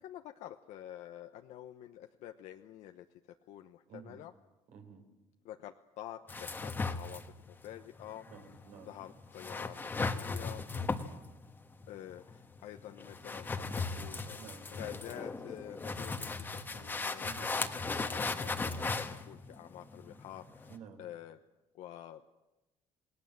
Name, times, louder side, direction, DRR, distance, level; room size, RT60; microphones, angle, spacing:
voice 1, 0.0-3.1 3.5-4.3 5.4-8.5 8.8-10.6 11.9-21.4 21.7-22.2, left 12 dB, 75° left, 6 dB, 1.0 m, -48 dB
voice 2, 3.9-4.2 4.7-5.1 8.3-8.9 10.7-11.1 14.4-14.7 17.2-17.5 20.7-21.0, right 7 dB, 75° right, 5 dB, 4.6 m, -51 dB
sound 1, 6.3-20.8, left 3 dB, 15° left, 1.4 m, -38 dB
28.0 x 20.0 x 7.5 m, 1.0 s
cardioid pair, 160°, 12 cm